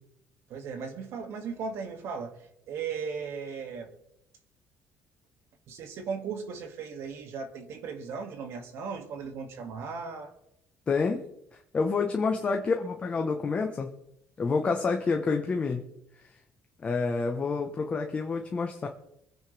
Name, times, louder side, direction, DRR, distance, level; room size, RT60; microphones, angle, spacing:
voice 1, 0.5-2.4 2.7-3.9 5.7-10.3, right 5 dB, 60° right, 5 dB, 2.3 m, -37 dB
voice 2, 10.9-11.2 11.7-13.9 14.4-15.8 16.8-18.9, left 4 dB, 25° left, 3 dB, 1.1 m, -28 dB
24.5 x 9.8 x 3.5 m, 0.81 s
cardioid pair, 155°, 5 cm